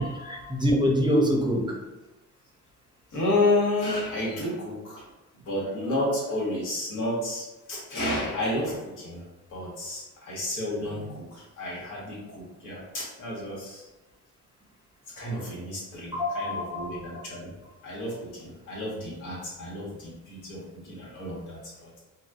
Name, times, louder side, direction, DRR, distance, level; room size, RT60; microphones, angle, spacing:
voice 1, 0.0-1.8 16.1-17.2, equal, 15° right, -1 dB, 0.6 m, -25 dB
voice 2, 3.1-5.1 5.4-9.2 9.5-13.8 15.1-17.5 17.8-22.0, left 1 dB, 85° left, -5 dB, 1.3 m, -31 dB
3.9 x 2.2 x 2.4 m, 1.0 s
cardioid pair, 90°, 30 cm